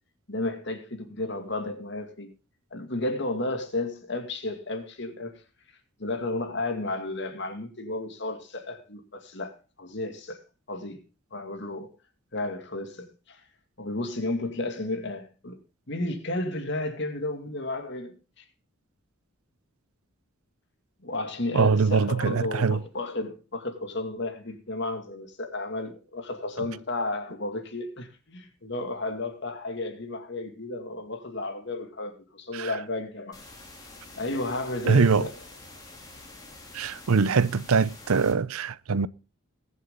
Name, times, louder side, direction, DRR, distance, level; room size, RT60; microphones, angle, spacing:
voice 1, 0.3-2.3 2.7-5.4 6.0-10.4 10.7-11.0 11.3-11.9 12.3-13.4 13.8-15.6 15.9-18.4 21.0-33.4 34.2-35.3, left 2 dB, 55° left, 2.3 m, -33 dB
voice 2, 21.5-22.8 32.5-32.7 34.8-35.3 36.7-39.1, right 5 dB, 85° right, 0.6 m, -23 dB
sound 1, 33.3-38.3, left 2 dB, 20° left, 3.0 m, -47 dB
21.0 x 7.2 x 3.8 m
head